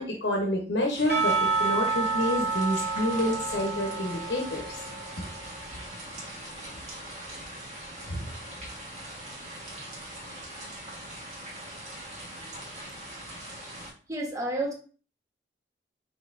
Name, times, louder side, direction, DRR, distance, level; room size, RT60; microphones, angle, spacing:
voice 1, 0.0-4.7 5.2-5.3 8.1-8.3, left 1 dB, 90° left, 0 dB, 0.9 m, -28 dB
sound 1, 0.9-13.9, right 1 dB, 40° right, 1.4 m, -41 dB
Percussion / Church bell, 1.1-5.5, right 4 dB, 60° right, 1.5 m, -29 dB
voice 2, 14.1-14.7, right 1 dB, 20° right, 0 dB, 1.0 m, -30 dB
5.4 x 3.3 x 2.5 m, 0.40 s
head